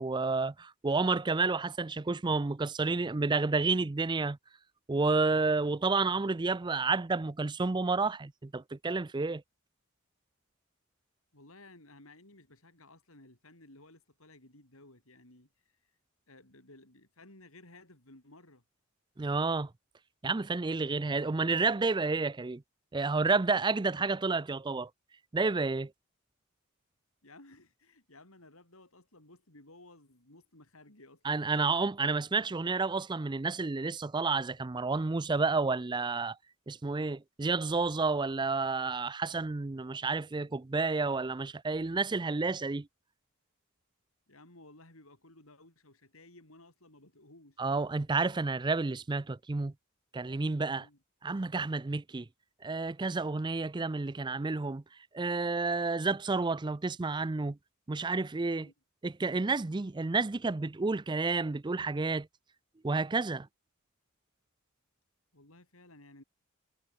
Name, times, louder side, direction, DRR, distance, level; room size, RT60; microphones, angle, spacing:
voice 1, 0.0-4.4 4.9-9.4 19.2-19.7 20.2-22.6 22.9-24.9 25.3-25.9 31.2-36.4 36.7-42.9 47.6-49.7 50.1-50.9 51.2-52.3 52.6-54.8 55.1-57.6 57.9-58.7 59.0-62.3 62.8-63.5, right 3 dB, 20° right, 0.4 m, -30 dB
voice 2, 11.3-15.9 16.3-18.6 27.2-31.4 44.3-47.6 50.7-51.0 58.5-58.7 65.3-66.2, left 2 dB, 70° left, 6.3 m, -56 dB
head